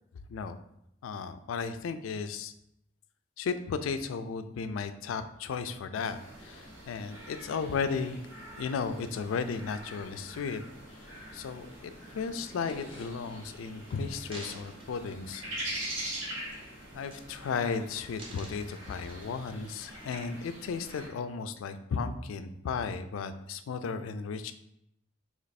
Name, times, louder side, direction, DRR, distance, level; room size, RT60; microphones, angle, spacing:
voice 1, 1.0-2.5 3.4-8.2 8.6-10.6 10.9-11.1 11.3-15.4 16.9-24.5, left 5 dB, 90° left, 10 dB, 0.3 m, -35 dB
sound 1, 6.0-21.1, right 1 dB, 80° right, 1.2 m, -44 dB
sound 2, 7.6-15.1, left 2 dB, 30° left, 0.5 m, -55 dB
sound 3, 14.3-16.1 16.5-16.7 17.0-17.6 17.9-19.6 20.2-20.3, right 1 dB, 25° right, 0.8 m, -50 dB
3.1 x 3.0 x 4.1 m, 0.79 s
head